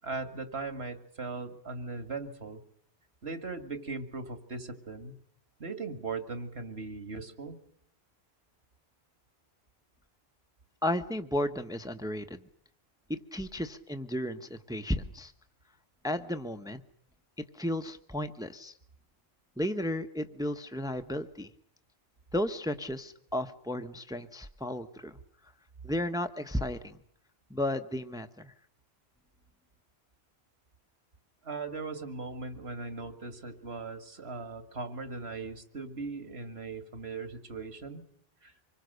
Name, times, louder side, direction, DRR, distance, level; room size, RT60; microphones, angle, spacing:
voice 1, 0.0-2.6 3.2-5.1 5.6-7.6 31.4-38.0 38.4-38.5, right 3 dB, 75° right, 9 dB, 2.3 m, -39 dB
voice 2, 10.8-12.4 13.1-15.3 16.0-16.8 17.5-18.7 19.6-21.5 22.3-25.2 25.8-27.0 27.5-28.5, left 1 dB, 5° right, 8 dB, 1.1 m, -33 dB
26.0 x 21.5 x 6.6 m, 0.65 s
omnidirectional pair, 1.1 m